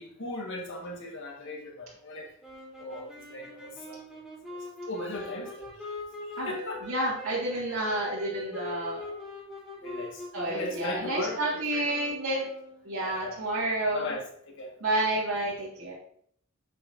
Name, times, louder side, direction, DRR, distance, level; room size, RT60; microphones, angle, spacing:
voice 1, 0.0-2.3 2.8-4.0 4.5-4.6 4.9-5.6 6.5-6.8 9.8-11.4 11.7-11.9 12.9-13.4 13.9-14.3 14.6-14.7, left 2 dB, 60° left, -1 dB, 1.7 m, -37 dB
sound 1, 2.4-12.9, left 1 dB, 5° right, 2.0 m, -42 dB
voice 2, 6.8-9.1 10.3-12.5 12.8-14.1 14.8-15.9, right 1 dB, 70° right, -9 dB, 2.1 m, -30 dB
8.7 x 5.8 x 2.7 m, 0.64 s
head